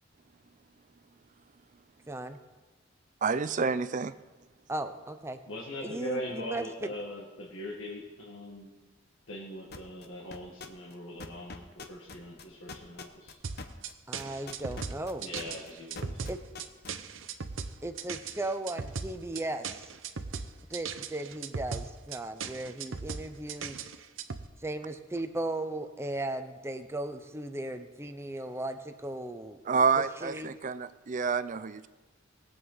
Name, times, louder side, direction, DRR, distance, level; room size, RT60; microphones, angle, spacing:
voice 1, 2.1-2.4 4.7-5.4 5.8-6.7 14.1-15.2 16.3-16.4 17.8-20.0 20.7-23.9 24.6-29.6 30.2-30.6, right 2 dB, 15° right, 8 dB, 0.7 m, -36 dB
voice 2, 3.2-4.1 29.7-31.9, right 5 dB, 40° right, 14 dB, 0.5 m, -28 dB
voice 3, 5.5-8.7 9.3-13.4 15.2-16.2, left 1 dB, 75° left, -3 dB, 1.8 m, -41 dB
sound 1, 9.7-10.1 10.3-10.9 11.2-16.9, left 3 dB, 55° left, 1.0 m, -42 dB
sound 2, 13.4-24.5, right 5 dB, 75° right, 0.7 m, -38 dB
20.0 x 7.8 x 4.1 m, 1.2 s
head